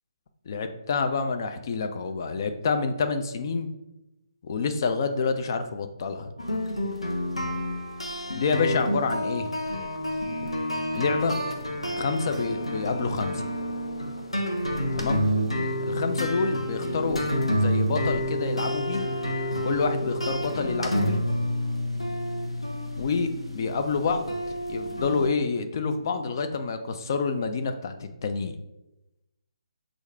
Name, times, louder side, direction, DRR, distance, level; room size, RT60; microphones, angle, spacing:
voice 1, 0.5-3.8 4.4-6.3 8.3-9.6 10.4-10.5 10.9-11.4 11.9-13.5 14.9-15.3 15.9-17.2 17.5-19.1 19.6-21.2 23.0-24.3 24.7-28.5, left 4 dB, 45° left, 7 dB, 0.4 m, -28 dB
sound 1, 6.4-25.3, equal, 85° left, 0.7 m, -29 dB
6.3 x 2.5 x 3.2 m, 0.96 s
figure-of-eight pair, 140°, 3 cm